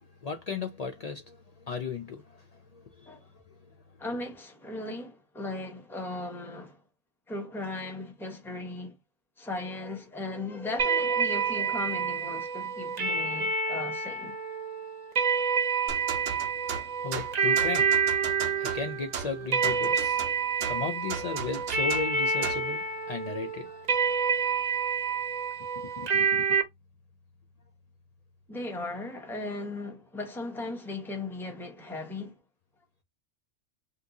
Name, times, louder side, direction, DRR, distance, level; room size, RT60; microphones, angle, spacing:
voice 1, 0.0-3.1 16.6-17.9 18.3-20.2 20.6-24.4 26.0-26.5, left 5 dB, 60° left, 0.4 m, -36 dB
voice 2, 4.0-6.8 7.3-9.0 9.4-14.4 28.5-32.4, left 2 dB, ahead, 0.7 m, -37 dB
sound 1, 10.8-26.6, right 5 dB, 40° right, 0.7 m, -28 dB
sound 2, 15.9-22.7, right 6 dB, 85° right, 0.9 m, -37 dB
2.8 x 2.5 x 3.6 m
omnidirectional pair, 1.2 m